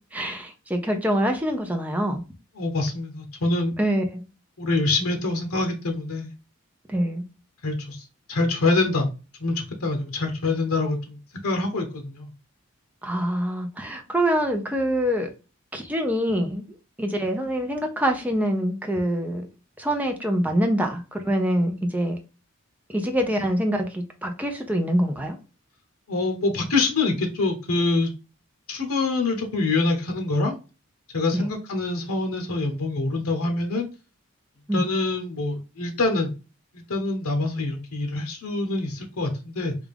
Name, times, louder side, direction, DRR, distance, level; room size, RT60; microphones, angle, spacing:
voice 1, 0.1-2.2 3.8-4.2 6.9-7.2 13.0-15.3 15.7-16.6 17.0-19.4 19.8-22.2 22.9-25.4 31.3-31.5 34.7-34.8, equal, 5° right, 0.5 m, -25 dB
voice 2, 2.6-3.7 4.6-6.3 7.6-9.1 9.4-12.3 26.1-28.1 28.7-30.6 31.1-33.9 34.7-36.3 36.7-39.7, left 3 dB, 90° left, 0.8 m, -25 dB
3.5 x 2.5 x 3.4 m
head